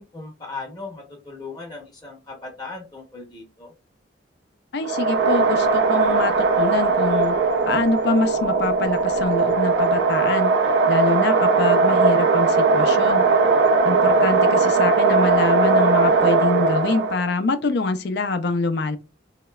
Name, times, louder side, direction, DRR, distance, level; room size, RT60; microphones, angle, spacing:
voice 1, 0.0-3.7, left 3 dB, 20° left, 0.8 m, -37 dB
voice 2, 4.7-7.4 7.7-10.5 10.9-13.3 13.8-19.0, left 3 dB, 60° left, 0.5 m, -25 dB
sound 1, 4.8-17.3, right 4 dB, 65° right, 0.4 m, -19 dB
3.1 x 2.8 x 2.3 m
head